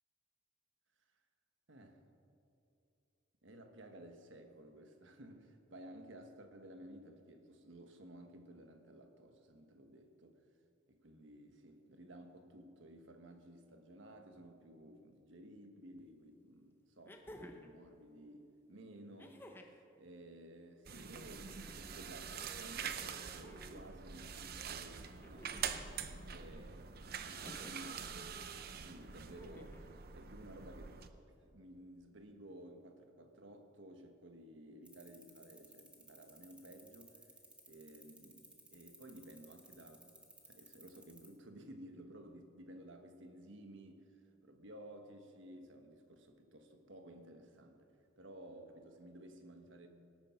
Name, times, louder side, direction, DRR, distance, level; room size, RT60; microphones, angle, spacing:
voice 1, 3.4-10.4 10.9-26.9 27.2-31.0 31.4-37.3 37.6-40.2 40.4-47.9 48.2-49.9, right 1 dB, 65° right, 6 dB, 1.4 m, -55 dB
sound 1, 16.0-16.1 17.0-17.8 19.2-19.8 21.1-21.8 23.1-23.9 25.2-25.9 27.4-27.9 29.3-29.9 31.2-31.3, equal, 10° left, 0.8 m, -55 dB
sound 2, 20.9-31.1, right 7 dB, 50° right, 0.7 m, -45 dB
sound 3, 34.9-41.3, right 2 dB, 5° right, 1.3 m, -59 dB
18.0 x 9.1 x 5.8 m, 2.6 s
head